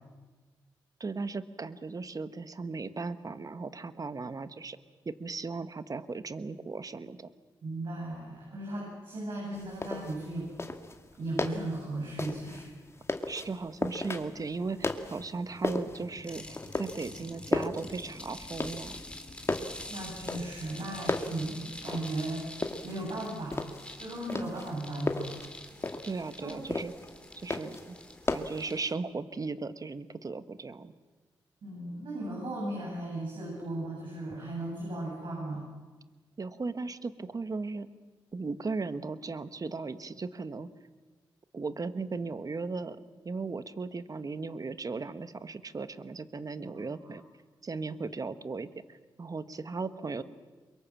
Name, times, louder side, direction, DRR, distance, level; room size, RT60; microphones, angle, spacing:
voice 1, 1.0-4.8 5.0-7.3 13.3-19.0 26.0-26.9 27.3-28.0 28.3-30.9 36.4-37.9 38.3-40.7 41.5-43.0 43.2-47.2 47.6-50.2, right 4 dB, 40° right, 12 dB, 1.5 m, -37 dB
voice 2, 7.6-10.5 11.2-12.7 19.9-22.4 22.8-23.6 24.0-25.4 26.4-26.6 31.6-35.7 46.7-47.1, right 1 dB, 65° right, -3 dB, 7.9 m, -36 dB
sound 1, 9.5-28.7, left 2 dB, 30° left, 2.3 m, -36 dB
sound 2, 16.2-28.9, left 1 dB, 10° left, 3.7 m, -47 dB
24.0 x 22.5 x 7.6 m, 1.3 s
supercardioid pair, 50°, 9 cm